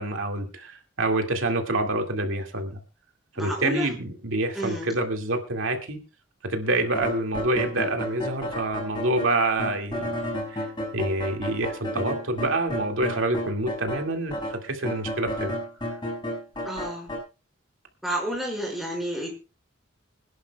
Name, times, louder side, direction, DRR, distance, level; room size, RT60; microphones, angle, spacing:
voice 1, 0.0-2.8 3.4-6.0 6.4-10.1 10.5-10.7 10.9-15.9, right 2 dB, 90° right, 3 dB, 2.1 m, -27 dB
voice 2, 3.4-3.9 4.5-4.9 16.6-17.1 18.0-19.3, equal, ahead, 0 dB, 5.4 m, -30 dB
sound 1, 6.9-14.0 14.3-17.2, equal, 25° left, 6.7 m, -32 dB
25.5 x 11.0 x 2.3 m, 0.30 s
head